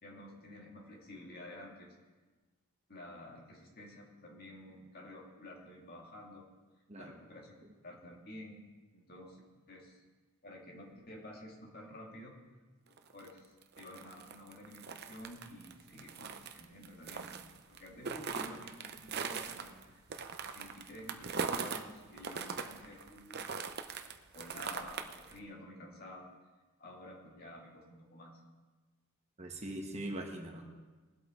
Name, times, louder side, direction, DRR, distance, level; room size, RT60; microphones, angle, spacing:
voice 1, 0.0-1.9 2.9-6.5 7.0-7.5 7.8-8.6 8.9-9.4 9.7-10.0 10.4-12.3 12.8-20.0 20.5-23.7 24.3-26.3 26.8-28.4, left 1 dB, 45° left, -1 dB, 2.2 m, -51 dB
sound 1, 13.0-21.8 22.2-25.4, right 5 dB, 45° right, 0.7 m, -40 dB
voice 2, 29.4-30.7, right 1 dB, 30° right, 2 dB, 1.2 m, -41 dB
20.5 x 8.2 x 3.7 m, 1.3 s
head